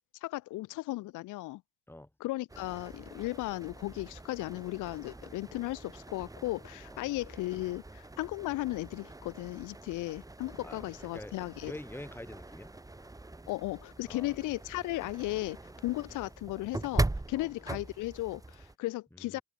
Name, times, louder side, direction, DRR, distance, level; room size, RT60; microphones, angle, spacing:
voice 1, 0.2-1.6 2.2-11.7 13.5-19.4, left 18 dB, 85° left, 0.7 m, -36 dB
sound 1, 2.5-18.7, right 2 dB, 10° right, 1.4 m, -41 dB
voice 2, 11.6-12.7 14.0-14.3 17.3-17.5 19.1-19.4, left 1 dB, 5° left, 3.4 m, -45 dB
open air
cardioid pair, 90°, 30 cm